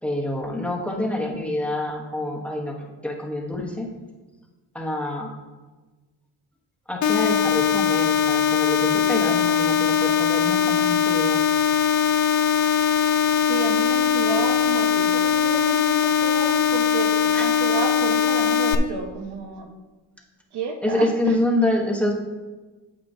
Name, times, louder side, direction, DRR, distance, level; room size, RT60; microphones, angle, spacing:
voice 1, 0.0-2.7 3.0-3.9 4.7-5.3 6.9-11.4 17.3-17.5 20.8-22.1, left 1 dB, 5° left, 0 dB, 1.0 m, -26 dB
sound 1, 7.0-18.8, left 7 dB, 50° left, 0.6 m, -20 dB
voice 2, 13.5-19.7 20.5-21.4, right 5 dB, 80° right, 3 dB, 1.2 m, -31 dB
8.9 x 8.4 x 2.7 m, 1.3 s
cardioid pair, 140°, 39 cm